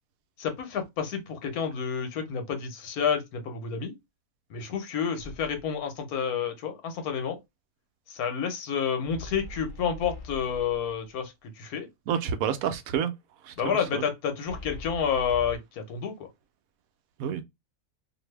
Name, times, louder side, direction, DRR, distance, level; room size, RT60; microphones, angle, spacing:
voice 1, 0.4-3.9 4.5-7.4 8.1-11.9 13.6-16.2, left 7 dB, 90° left, 1.3 m, -30 dB
sound 1, 5.2-5.8 9.0-11.1 14.5-15.6, left 2 dB, 65° left, 0.5 m, -42 dB
voice 2, 12.1-13.1 13.4-13.5 13.9-14.0 17.2-17.4, right 8 dB, 75° right, 1.0 m, -28 dB
2.6 x 2.6 x 3.1 m
omnidirectional pair, 1.5 m